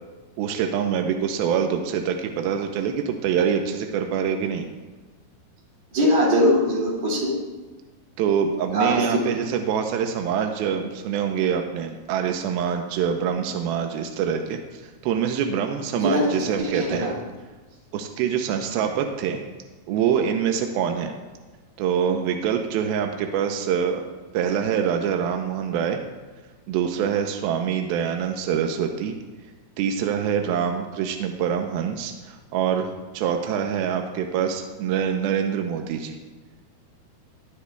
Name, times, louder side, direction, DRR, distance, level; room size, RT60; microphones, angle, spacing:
voice 1, 0.4-4.7 8.2-17.1 17.9-19.4 19.9-21.2 21.8-24.1 24.3-26.0 26.7-29.2 29.8-36.2, right 8 dB, 85° right, 4 dB, 2.2 m, -25 dB
voice 2, 5.9-7.3 8.7-9.1 16.0-16.4 16.7-17.1, equal, 60° right, -4 dB, 4.0 m, -21 dB
20.0 x 8.2 x 2.3 m, 1.3 s
omnidirectional pair, 4.9 m